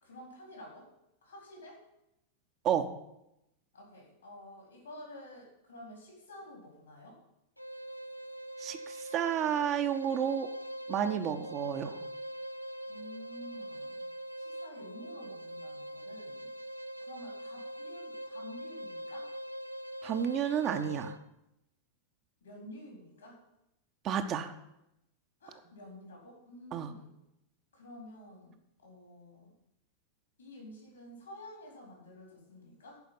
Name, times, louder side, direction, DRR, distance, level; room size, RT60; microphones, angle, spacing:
voice 1, 0.0-0.9 1.2-1.8 3.7-7.2 12.9-14.0 14.4-16.5 17.0-19.3 22.4-23.4 25.4-27.1 27.7-29.5 30.4-33.0, left 1 dB, 70° left, -1 dB, 4.1 m, -50 dB
sound 1, 7.6-21.2, right 1 dB, 90° right, 0.4 m, -43 dB
voice 2, 8.6-10.5 10.9-12.0 20.0-21.1 24.0-24.5 26.7-26.9, right 9 dB, 35° right, 7 dB, 0.7 m, -31 dB
10.5 x 5.1 x 7.7 m, 0.85 s
figure-of-eight pair, 90°, 0 cm